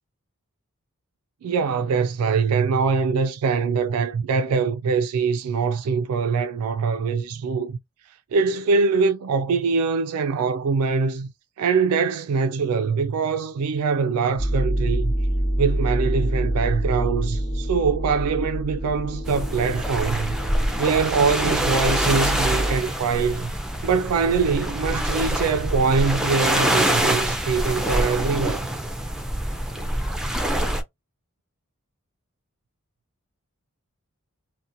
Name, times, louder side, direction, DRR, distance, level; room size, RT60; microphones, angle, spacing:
voice 1, 1.4-7.8 8.3-11.3 11.6-15.1 15.6-20.4 20.8-23.5 23.8-28.6, right 5 dB, 90° right, 0.3 m, -23 dB
sound 1, 14.4-22.8, right 1 dB, 15° left, 0.7 m, -26 dB
sound 2, 19.3-30.8, right 1 dB, 5° right, 0.3 m, -25 dB
2.8 x 2.1 x 2.5 m
head